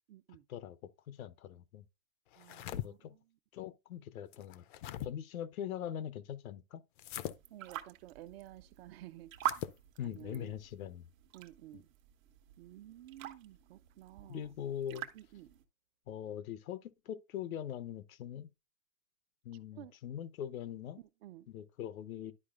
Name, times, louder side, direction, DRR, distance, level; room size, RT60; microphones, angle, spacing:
voice 1, 0.1-0.4 2.4-3.2 7.5-9.3 9.6-9.7 10.0-10.5 11.3-11.8 12.6-14.5 15.1-15.5 19.8-19.9 21.2-21.5, right 14 dB, 50° right, 0.4 m, -52 dB
voice 2, 1.1-1.8 2.7-3.1 3.5-4.6 5.0-6.8 10.0-11.1 11.7-11.8 14.3-15.1 16.1-18.5 19.4-21.0 21.5-22.3, left 10 dB, 85° left, 0.8 m, -42 dB
sound 1, 2.3-2.9 4.3-5.1 7.0-7.4 9.3-9.8, left 12 dB, 40° left, 0.4 m, -41 dB
sound 2, 7.1-15.6, right 12 dB, 75° right, 1.1 m, -45 dB
11.0 x 4.7 x 2.4 m
supercardioid pair, 145°, 41 cm